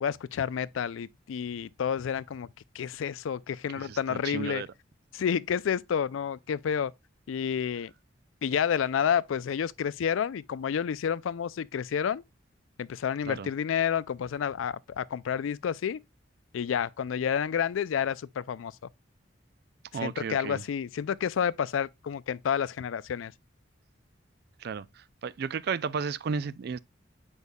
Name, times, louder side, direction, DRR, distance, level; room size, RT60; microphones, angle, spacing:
voice 1, 0.0-2.5 2.7-4.6 5.1-6.9 7.3-7.9 8.4-12.2 12.8-16.0 16.5-18.8 20.0-23.3, left 8 dB, 85° left, 0.4 m, -30 dB
voice 2, 3.8-4.7 13.3-13.5 19.9-20.6 24.6-26.8, right 6 dB, 55° right, 0.3 m, -34 dB
8.1 x 5.3 x 2.3 m
head